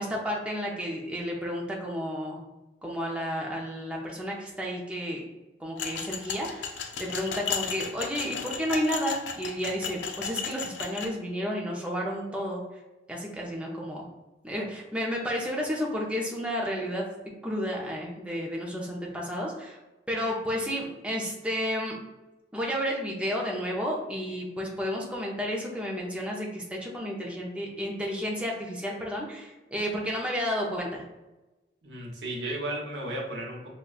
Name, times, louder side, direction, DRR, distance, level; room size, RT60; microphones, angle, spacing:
voice 1, 0.0-2.4 2.8-5.2 5.6-12.6 13.1-14.0 14.4-17.1 17.4-19.8 20.1-22.0 22.5-31.0, equal, 5° right, -2 dB, 0.5 m, -32 dB
sound 1, 5.8-11.1, left 6 dB, 75° left, 0.4 m, -34 dB
voice 2, 31.8-33.7, right 1 dB, 75° right, -1 dB, 0.9 m, -34 dB
5.1 x 2.2 x 2.3 m, 1.1 s
head